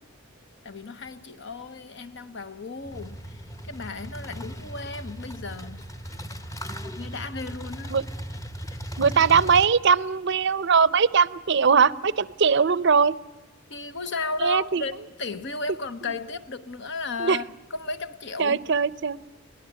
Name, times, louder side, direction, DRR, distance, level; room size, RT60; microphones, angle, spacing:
voice 1, 0.6-3.4 3.7-5.9 7.0-8.0 8.7-8.8 13.7-18.7, left 3 dB, 60° left, 1.2 m, -34 dB
sound 1, 2.8-9.7, equal, 15° left, 1.0 m, -37 dB
voice 2, 9.0-13.2 14.4-14.8 17.2-17.4 18.4-19.2, right 6 dB, 55° right, 0.6 m, -20 dB
23.5 x 18.0 x 8.0 m
head